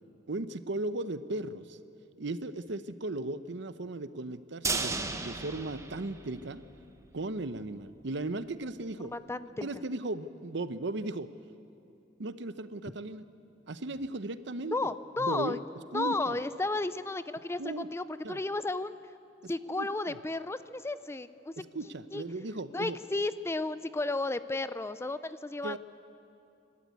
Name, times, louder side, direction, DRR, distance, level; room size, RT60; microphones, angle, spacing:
voice 1, 0.3-1.8 2.2-6.6 7.1-9.1 9.6-11.3 12.2-13.2 13.7-14.8 15.2-15.6 15.9-16.4 17.6-17.9 18.2-18.4 19.7-20.2 21.6-23.0 25.6-25.8, right 2 dB, 65° right, 12 dB, 0.8 m, -36 dB
sound 1, 4.6-6.8 7.1-7.2 7.6-7.7, right 3 dB, 15° right, 1.0 m, -34 dB
voice 2, 9.0-9.7 14.7-15.6 15.9-19.0 19.5-21.5 22.1-22.2 22.7-25.8, left 2 dB, 15° left, 13 dB, 0.4 m, -33 dB
29.0 x 12.5 x 9.4 m, 2.8 s
head